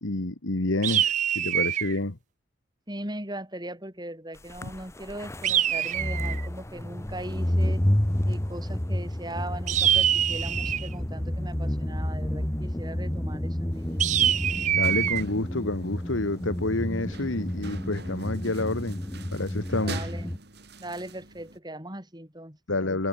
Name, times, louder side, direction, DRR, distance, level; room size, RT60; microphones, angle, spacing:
voice 1, 0.0-2.2 4.6-4.7 14.8-19.0 19.3-20.1 22.7-23.1, left 2 dB, 90° left, 1.8 m, -29 dB
sound 1, 0.8-2.0 5.4-6.5 9.7-10.9 14.0-15.2, right 10 dB, 40° right, 0.3 m, -24 dB
voice 2, 2.9-7.8 8.2-14.2 19.8-20.4 20.8-22.6, right 1 dB, 20° right, 5.9 m, -39 dB
sound 2, 4.5-20.4, left 1 dB, 15° left, 0.9 m, -30 dB
sound 3, 13.7-21.6, right 3 dB, 55° right, 3.9 m, -45 dB
head